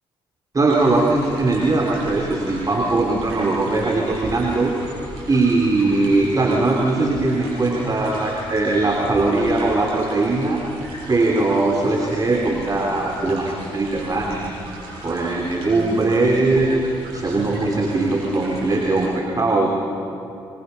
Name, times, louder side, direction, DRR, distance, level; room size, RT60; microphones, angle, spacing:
voice 1, 0.5-4.7 5.3-10.6 11.1-14.5 15.0-16.9 17.1-19.7, right 2 dB, 30° right, 0 dB, 3.2 m, -20 dB
sound 1, 0.7-19.1, right 2 dB, 80° right, 7.3 m, -37 dB
25.5 x 24.0 x 5.7 m, 2.7 s
hypercardioid pair, 45°, 12 cm